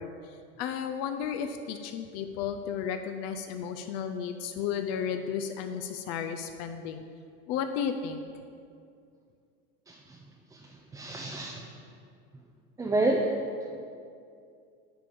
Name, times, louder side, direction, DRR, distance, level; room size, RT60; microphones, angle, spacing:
voice 1, 0.0-7.0 7.5-8.2, left 7 dB, 50° left, 7 dB, 0.5 m, -33 dB
voice 2, 9.9-10.2 10.5-10.6 10.9-11.6 12.8-13.3, right 2 dB, 10° right, 0 dB, 0.4 m, -29 dB
10.0 x 3.6 x 6.9 m, 2.4 s
supercardioid pair, 135°, 32 cm